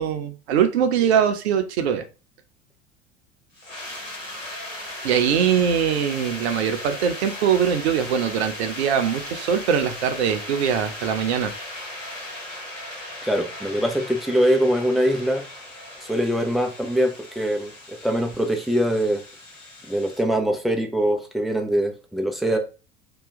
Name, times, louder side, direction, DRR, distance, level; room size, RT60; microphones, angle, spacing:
voice 1, 0.0-2.0 5.0-11.5, right 8 dB, 60° right, 7 dB, 0.7 m, -22 dB
sound 1, 3.5-20.2, left 1 dB, 90° left, 1.1 m, -37 dB
voice 2, 13.2-15.4 16.0-19.2 19.9-22.6, equal, ahead, 2 dB, 0.4 m, -23 dB
2.9 x 2.2 x 4.0 m, 0.32 s
figure-of-eight pair, 75°, 37 cm